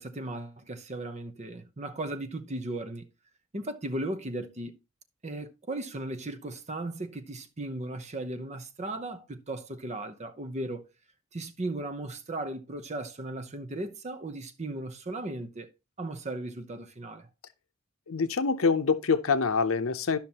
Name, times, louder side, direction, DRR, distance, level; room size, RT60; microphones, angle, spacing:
voice 1, 0.0-3.1 3.5-4.8 5.2-10.8 11.3-15.7 16.0-17.3, right 2 dB, 35° right, 0.8 m, -36 dB
voice 2, 18.1-20.2, left 5 dB, 75° left, 0.6 m, -25 dB
12.5 x 5.8 x 2.8 m
head